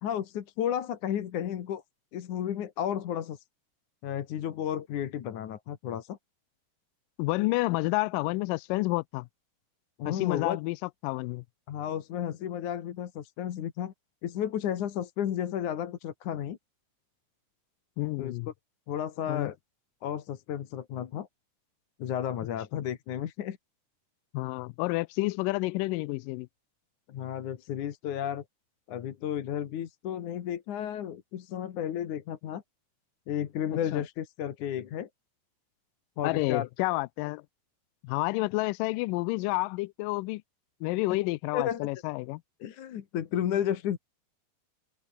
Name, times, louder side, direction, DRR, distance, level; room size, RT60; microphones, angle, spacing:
voice 1, 0.0-1.8 2.1-3.4 4.0-6.2 10.0-10.6 11.7-13.9 14.2-16.6 18.2-18.3 18.9-19.6 20.0-21.3 22.0-23.6 27.1-28.4 28.9-32.6 33.3-35.1 36.2-36.9 41.5-41.9 42.6-44.0, left 10 dB, 70° left, 3.0 m, -33 dB
voice 2, 7.2-9.3 10.1-10.8 11.0-11.4 18.0-18.5 19.3-19.5 24.3-26.5 33.7-34.0 36.2-37.4 38.0-40.4 40.8-42.4, left 22 dB, 85° left, 2.2 m, -29 dB
omnidirectional pair, 3.8 m